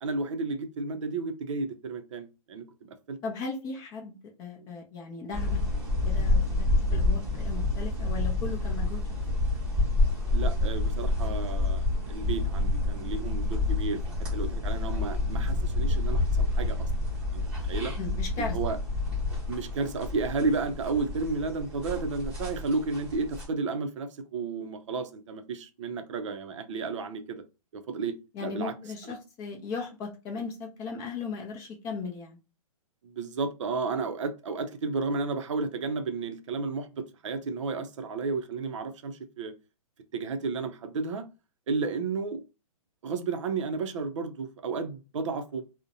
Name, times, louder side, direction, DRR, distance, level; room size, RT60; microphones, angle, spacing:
voice 1, 0.0-3.2 4.6-4.7 10.3-16.9 17.3-17.9 18.4-18.8 19.5-27.4 27.7-28.7 29.0-29.1 33.0-39.5 40.1-41.2 41.7-42.4 43.0-45.7, right 4 dB, 55° right, 0.5 m, -32 dB
voice 2, 3.2-5.6 6.0-6.7 6.9-9.2 18.0-18.6 28.3-32.4, left 4 dB, 20° left, 0.5 m, -37 dB
sound 1, 5.3-23.5, left 2 dB, 5° right, 0.9 m, -28 dB
2.6 x 2.1 x 2.6 m
hypercardioid pair, 150°, 18 cm